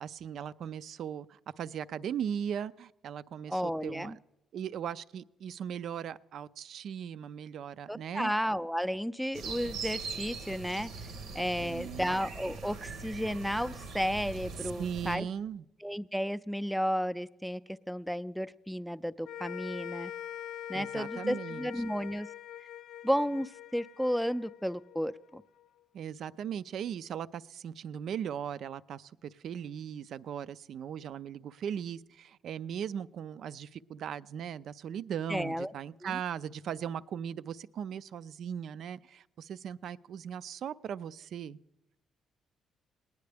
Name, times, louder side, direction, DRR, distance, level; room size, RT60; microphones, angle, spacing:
voice 1, 0.0-4.2 4.5-8.3 11.6-12.2 14.6-15.6 20.7-21.8 25.9-41.6, right 8 dB, 70° right, 0.3 m, -38 dB
voice 2, 3.5-4.2 7.9-10.9 11.3-15.3 15.8-17.6 17.9-20.1 20.7-22.3 23.0-25.4 35.3-35.7 36.0-36.1, equal, ahead, 0.4 m, -33 dB
sound 1, 9.3-15.2, right 4 dB, 85° right, 0.9 m, -41 dB
sound 2, 19.2-25.7, left 11 dB, 75° left, 0.3 m, -44 dB
20.0 x 9.4 x 3.4 m
cardioid pair, 90°, 0 cm